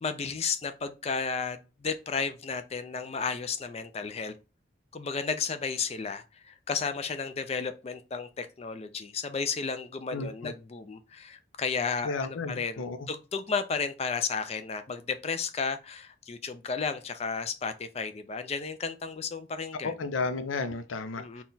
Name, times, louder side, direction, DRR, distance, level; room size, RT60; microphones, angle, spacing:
voice 1, 0.0-4.3 4.9-19.9 21.2-21.4, left 5 dB, 30° left, 0.4 m, -33 dB
voice 2, 10.1-10.5 12.0-13.1 19.8-21.4, left 3 dB, 85° left, 0.5 m, -33 dB
4.0 x 2.3 x 3.9 m
head